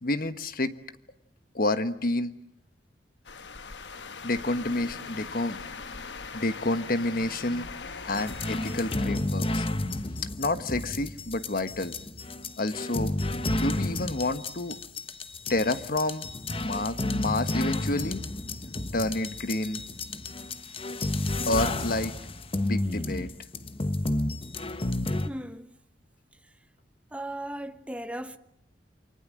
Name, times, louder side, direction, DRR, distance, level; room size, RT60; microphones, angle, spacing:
voice 1, 0.0-0.8 1.5-2.4 4.2-5.6 6.3-7.7 8.1-9.7 10.4-11.9 12.6-13.2 13.6-14.8 15.5-16.2 16.6-18.2 18.9-19.8 21.5-22.1 22.6-23.3, left 2 dB, 55° left, 1.3 m, -29 dB
sound 1, 3.2-9.0, left 5 dB, 80° left, 1.3 m, -40 dB
sound 2, 8.1-25.3, left 2 dB, 30° left, 1.1 m, -31 dB
sound 3, 15.3-20.8 21.0-21.1 21.3-21.4 21.6-21.7, equal, 75° right, 7.4 m, -58 dB
voice 2, 25.3-25.8 27.1-28.4, right 1 dB, 5° right, 1.0 m, -37 dB
29.0 x 24.0 x 7.6 m
head